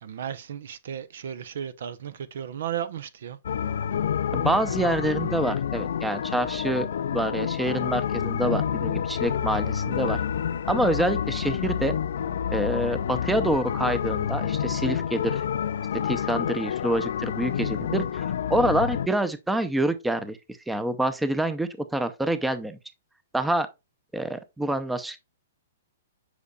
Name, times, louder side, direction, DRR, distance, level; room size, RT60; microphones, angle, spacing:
voice 1, 0.0-3.4, right 9 dB, 70° right, 0.6 m, -34 dB
sound 1, 3.4-19.1, left 8 dB, 70° left, 0.4 m, -28 dB
voice 2, 4.3-10.2 10.7-12.0 12.5-15.4 16.0-20.4 20.7-22.8 23.3-23.7 24.1-25.2, right 1 dB, 5° right, 0.6 m, -27 dB
8.1 x 5.1 x 2.3 m
hypercardioid pair, 130°, 0 cm